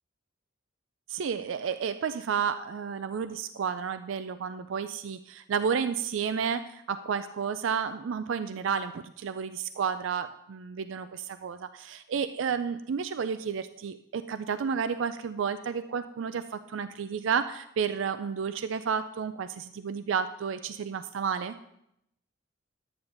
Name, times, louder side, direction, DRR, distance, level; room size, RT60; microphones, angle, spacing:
voice 1, 1.1-21.6, right 6 dB, 70° right, 11 dB, 0.4 m, -31 dB
11.0 x 8.8 x 3.9 m, 0.78 s
head